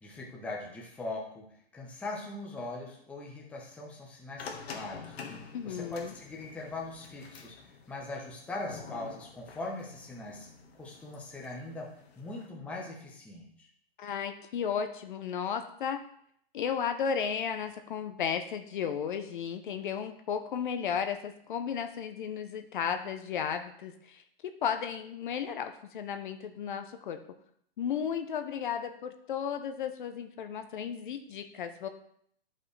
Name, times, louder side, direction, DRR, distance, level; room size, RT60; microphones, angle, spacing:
voice 1, 0.0-1.5 1.7-10.5 10.8-11.9 12.2-13.7, left 2 dB, 5° left, -2 dB, 0.8 m, -41 dB
sound 1, 4.4-12.5, left 5 dB, 75° left, 1.5 m, -48 dB
voice 2, 5.5-6.1 14.0-16.0 16.5-27.2 27.8-31.9, left 7 dB, 50° left, 8 dB, 0.8 m, -34 dB
11.0 x 5.5 x 3.2 m, 0.67 s
hypercardioid pair, 160°, 31 cm